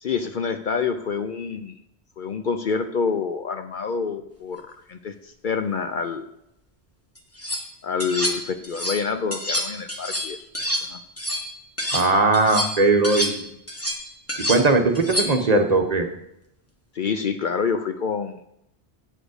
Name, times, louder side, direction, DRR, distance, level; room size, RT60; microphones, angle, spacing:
voice 1, 0.0-1.8 2.2-6.3 7.8-10.5 10.8-11.0 16.9-18.4, left 5 dB, 55° left, 8 dB, 0.7 m, -27 dB
sound 1, 7.2-7.6 8.0-9.0 9.3-12.1 12.3-15.5, equal, 15° left, 1.1 m, -28 dB
voice 2, 11.9-13.4 14.5-16.1, right 3 dB, 40° right, 4 dB, 1.0 m, -19 dB
8.8 x 5.0 x 6.4 m, 0.81 s
omnidirectional pair, 1.1 m